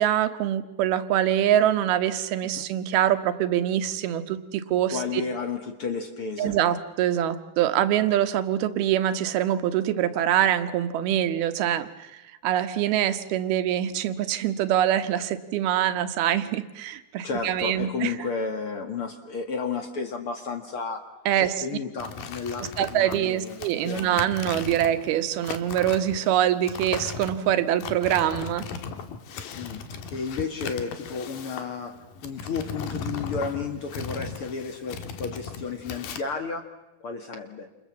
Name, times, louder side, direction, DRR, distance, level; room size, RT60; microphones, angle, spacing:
voice 1, 0.0-5.0 6.4-12.1 12.4-18.1 21.3-21.5 22.8-28.6, right 11 dB, 80° right, 10 dB, 3.1 m, -24 dB
voice 2, 4.9-6.6 17.2-21.0 21.4-24.2 29.6-36.7 37.0-37.7, left 5 dB, 50° left, 6 dB, 1.8 m, -32 dB
sound 1, 22.0-36.2, left 6 dB, 65° left, 3.1 m, -37 dB
29.0 x 28.0 x 7.4 m, 1.0 s
omnidirectional pair, 4.4 m